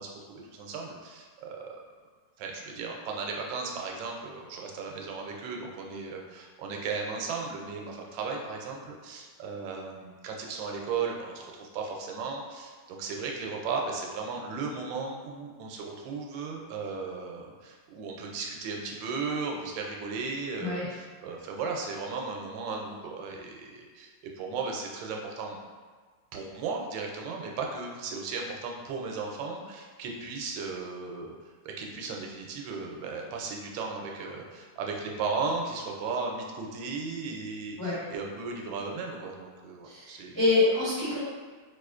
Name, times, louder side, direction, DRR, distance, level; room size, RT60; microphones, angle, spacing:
voice 1, 0.0-1.8 2.4-24.1 24.4-25.6 26.3-31.3 31.6-40.4, right 4 dB, 85° right, 1 dB, 1.3 m, -36 dB
voice 2, 39.8-41.2, left 2 dB, 20° left, -10 dB, 0.4 m, -26 dB
4.6 x 2.4 x 2.4 m, 1.5 s
omnidirectional pair, 2.0 m